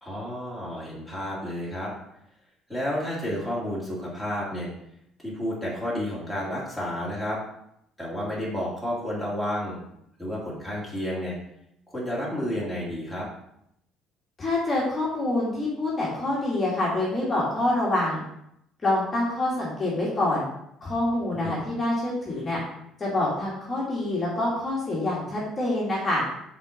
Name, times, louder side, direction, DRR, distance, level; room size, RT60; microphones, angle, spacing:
voice 1, 0.0-1.9 2.7-4.7 5.2-7.4 8.0-9.8 10.2-11.4 11.9-13.3 21.3-21.6, equal, ahead, -6 dB, 1.9 m, -31 dB
voice 2, 14.4-18.2 18.8-20.4 20.8-22.6 23.0-26.2, left 2 dB, 20° left, -5 dB, 1.7 m, -26 dB
5.4 x 4.6 x 6.2 m, 0.77 s
cardioid pair, 175°, 0 cm